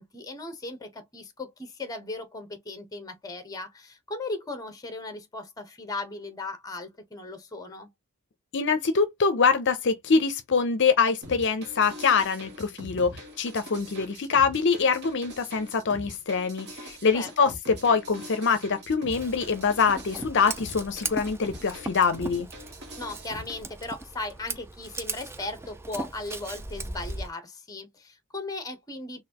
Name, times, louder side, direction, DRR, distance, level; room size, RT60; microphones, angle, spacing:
voice 1, 0.0-7.9 17.1-17.5 23.0-29.2, left 2 dB, 15° left, 0.9 m, -37 dB
voice 2, 8.5-22.5, left 5 dB, 55° left, 0.6 m, -24 dB
sound 1, 11.2-23.6, equal, 50° right, 1.4 m, -43 dB
Scissors, 19.1-27.3, right 3 dB, 10° right, 0.3 m, -38 dB
4.0 x 2.6 x 2.8 m
head